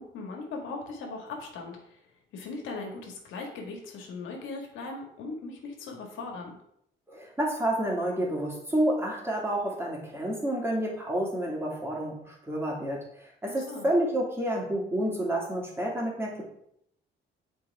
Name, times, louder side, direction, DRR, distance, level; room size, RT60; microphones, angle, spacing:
voice 1, 0.0-2.0 2.3-6.6 13.5-13.9, left 3 dB, 90° left, 1 dB, 1.8 m, -39 dB
voice 2, 7.1-16.4, right 1 dB, 10° right, -2 dB, 2.7 m, -29 dB
7.9 x 4.6 x 4.7 m, 0.73 s
cardioid pair, 90°, 20 cm